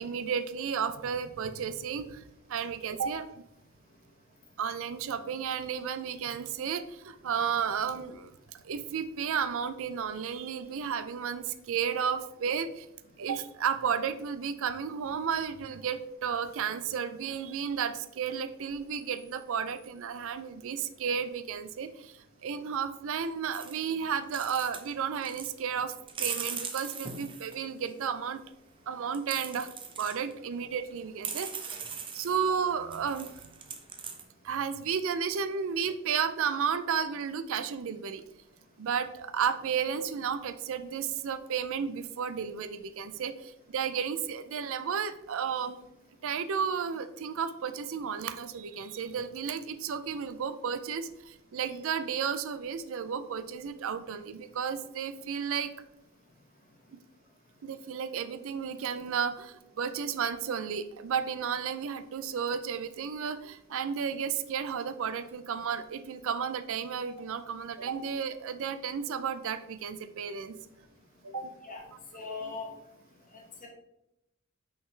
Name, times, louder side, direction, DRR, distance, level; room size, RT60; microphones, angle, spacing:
voice 1, 0.0-3.2 4.6-12.9 13.2-28.4 28.9-29.7 30.0-31.8 32.1-33.5 34.4-38.2 38.8-45.8 46.2-55.7 57.6-70.6 71.3-71.4 72.4-72.5, right 7 dB, 65° right, 12 dB, 0.4 m, -33 dB
sound 1, 23.5-23.8 24.2-24.9 25.2-25.5 26.1-27.9 29.1-30.3 30.9-31.0 31.2-32.4 32.9-34.2, right 6 dB, 25° right, 0.6 m, -39 dB
voice 2, 71.3-71.8 72.1-72.7 73.6-73.7, left 3 dB, 40° left, 0 dB, 1.5 m, -40 dB
5.7 x 5.6 x 3.3 m, 0.85 s
head